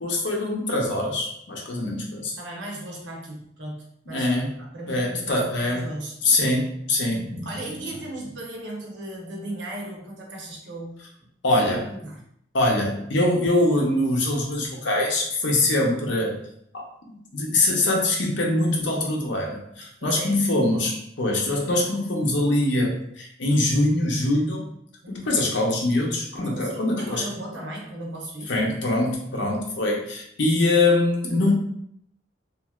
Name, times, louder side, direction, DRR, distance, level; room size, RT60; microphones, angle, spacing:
voice 1, 0.0-2.3 4.1-4.5 4.9-5.9 6.2-7.3 11.4-11.9 12.5-16.4 16.7-24.6 25.1-27.2 28.5-31.5, left 2 dB, 65° left, 0 dB, 0.7 m, -23 dB
voice 2, 2.4-4.3 4.6-6.4 7.1-11.0 11.5-12.2 20.0-20.4 25.0-25.4 26.5-28.5, right 1 dB, 65° right, -1 dB, 0.7 m, -36 dB
3.0 x 2.4 x 2.3 m, 0.72 s
head